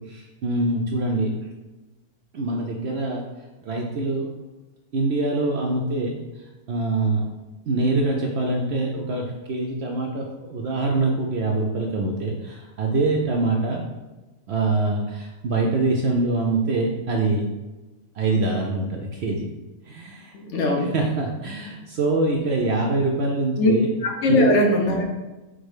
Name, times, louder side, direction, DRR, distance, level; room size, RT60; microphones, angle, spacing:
voice 1, 0.0-1.3 2.3-3.2 3.7-4.2 4.9-6.2 6.7-7.2 7.7-13.8 14.5-17.5 18.2-19.5 19.9-20.3 20.9-23.9 24.4-24.5, right 2 dB, 70° right, 0 dB, 0.6 m, -24 dB
voice 2, 20.3-21.0 23.6-23.7 24.0-25.0, left 1 dB, 60° left, 1 dB, 1.0 m, -20 dB
4.8 x 2.2 x 4.8 m, 1.1 s
omnidirectional pair, 1.5 m